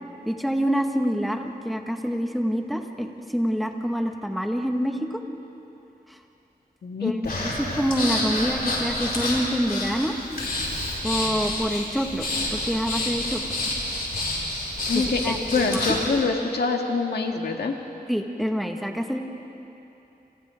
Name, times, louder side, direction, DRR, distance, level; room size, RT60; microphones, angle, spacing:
voice 1, 0.2-3.1 3.3-5.2 7.0-7.1 7.4-10.1 11.0-12.3 12.5-13.4 15.2-15.4 15.6-15.8 18.1-19.2, equal, ahead, 3 dB, 1.7 m, -26 dB
voice 2, 6.8-7.4 14.9-17.8, left 4 dB, 85° left, 2 dB, 1.8 m, -25 dB
Breathing, 7.2-16.1, left 1 dB, 70° left, 5.4 m, -29 dB
30.0 x 27.5 x 3.8 m, 2.9 s
wide cardioid pair, 90°, 16 cm